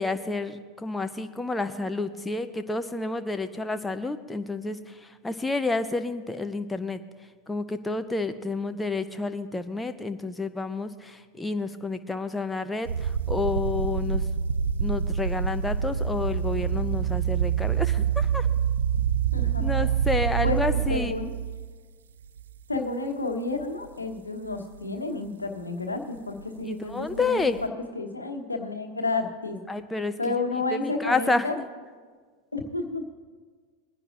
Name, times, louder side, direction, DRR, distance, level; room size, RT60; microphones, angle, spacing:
voice 1, 0.0-7.0 7.5-14.3 14.8-18.5 19.6-21.2 26.6-27.7 29.7-30.4 30.7-31.7, left 3 dB, 10° left, 9 dB, 0.6 m, -30 dB
sound 1, 12.9-21.7 22.4-22.8 23.3-23.4 27.0-27.7, right 8 dB, 75° right, 0.3 m, -26 dB
voice 2, 19.3-19.8 20.4-20.6 20.9-21.3 22.7-29.6 30.2-31.6 32.5-33.0, left 3 dB, 90° left, 5 dB, 1.1 m, -31 dB
22.0 x 9.9 x 2.5 m, 1.5 s
figure-of-eight pair, 90°, 0 cm